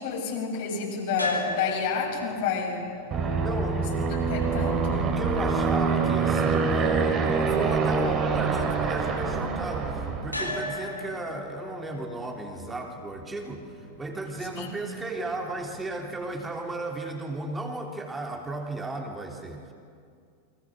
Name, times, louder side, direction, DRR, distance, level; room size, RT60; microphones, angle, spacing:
voice 1, 0.0-2.8 4.3-5.1 14.5-14.7, left 5 dB, 50° left, 0 dB, 7.0 m, -29 dB
sound 1, 1.1-17.3, left 1 dB, 85° left, 3.3 m, -41 dB
Aircraft, 3.1-10.4, right 5 dB, 25° right, 3.8 m, -25 dB
voice 2, 3.4-3.9 5.0-19.7, right 2 dB, 10° right, 2 dB, 3.4 m, -35 dB
29.5 x 24.0 x 6.6 m, 2.3 s
figure-of-eight pair, 90°, 0 cm